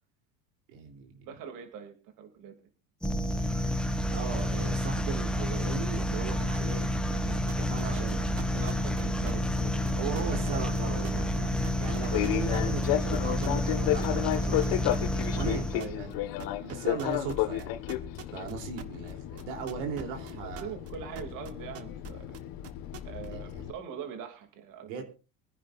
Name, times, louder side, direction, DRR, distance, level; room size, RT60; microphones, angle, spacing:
voice 1, 0.7-1.1 4.1-8.3 10.0-15.7 16.0-16.1 16.7-17.7 18.3-20.7 23.3-23.7 24.8-25.0, right 6 dB, 80° right, 3 dB, 3.4 m, -38 dB
voice 2, 1.2-2.5 7.8-8.1 8.5-10.6 15.7-16.0 16.6-16.7 20.1-22.4 23.0-25.0, right 8 dB, 55° right, 5 dB, 2.8 m, -43 dB
sound 1, 3.0-16.0, equal, ahead, 1.0 m, -29 dB
sound 2, 7.5-13.8 14.0-16.1 16.4-20.9 21.2-23.3, right 8 dB, 40° right, 1.4 m, -44 dB
Fixed-wing aircraft airplane, 8.3-23.7, left 13 dB, 65° left, 1.6 m, -34 dB
24.5 x 10.0 x 2.6 m, 0.33 s
supercardioid pair, 125°, 38 cm